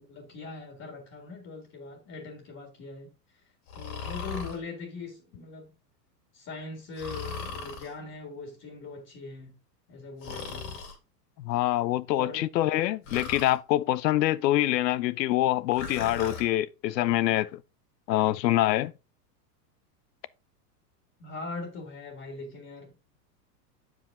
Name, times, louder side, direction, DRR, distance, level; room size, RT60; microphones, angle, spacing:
voice 1, 0.1-3.4 3.7-5.7 6.3-9.6 9.9-10.8 12.2-12.4 21.2-22.9, left 3 dB, 30° left, 1.7 m, -41 dB
Breathing, 3.7-4.6 7.0-7.9 10.2-11.0 13.1-13.6 15.7-16.5, left 5 dB, 60° left, 2.6 m, -38 dB
voice 2, 11.4-17.6 18.1-18.9, left 14 dB, 85° left, 0.7 m, -25 dB
7.7 x 5.0 x 3.6 m
supercardioid pair, 145°, 49 cm